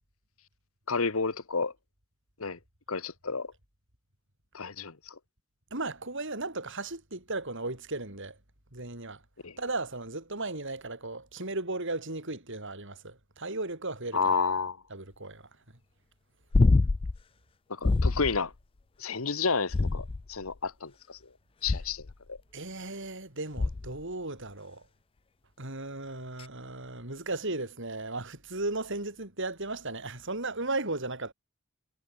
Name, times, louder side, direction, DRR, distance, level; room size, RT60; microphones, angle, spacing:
voice 1, 0.9-1.7 2.4-2.6 2.9-3.5 4.5-5.1 9.4-9.5 14.1-14.8 17.7-18.5 19.0-21.2 21.6-22.0 22.3-22.4, left 4 dB, 80° left, 1.5 m, -30 dB
voice 2, 5.7-8.4 8.7-9.2 9.6-14.4 14.9-15.5 22.5-24.8 25.6-31.3, right 2 dB, 60° right, 7.6 m, -36 dB
sound 1, 16.5-17.2 17.8-18.4 19.7-20.4 21.6-22.1 23.6-24.0 26.4-26.5, left 3 dB, 25° left, 0.4 m, -25 dB
head